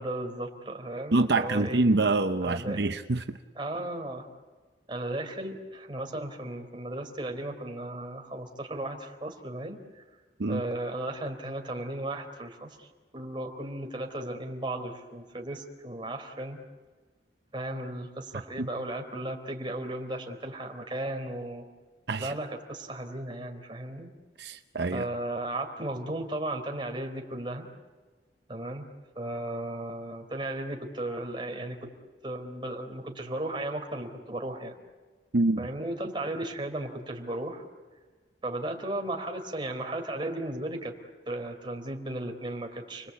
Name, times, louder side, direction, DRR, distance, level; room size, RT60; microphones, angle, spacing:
voice 1, 0.0-1.8 2.4-2.9 3.6-4.3 4.9-10.0 10.5-12.9 13.1-16.6 17.5-21.6 22.2-24.1 24.9-27.7 28.5-28.8 29.2-31.9 32.2-34.7 35.6-37.6 38.4-40.9 41.3-43.1, right 1 dB, 25° right, 3 dB, 4.0 m, -35 dB
voice 2, 1.1-3.2 10.4-10.6 18.6-18.7 22.1-22.3 24.4-25.1 35.3-35.6, right 2 dB, 65° right, 7 dB, 0.8 m, -25 dB
30.0 x 21.5 x 8.4 m, 1.4 s
head